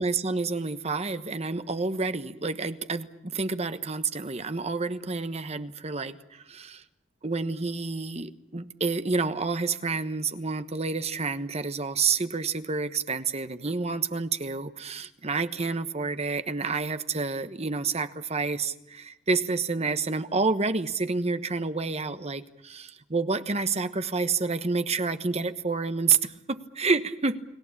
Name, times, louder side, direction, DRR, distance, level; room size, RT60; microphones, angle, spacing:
voice 1, 0.0-6.8 7.2-27.4, right 4 dB, 35° right, 11 dB, 1.2 m, -29 dB
30.0 x 19.0 x 8.6 m, 0.84 s
head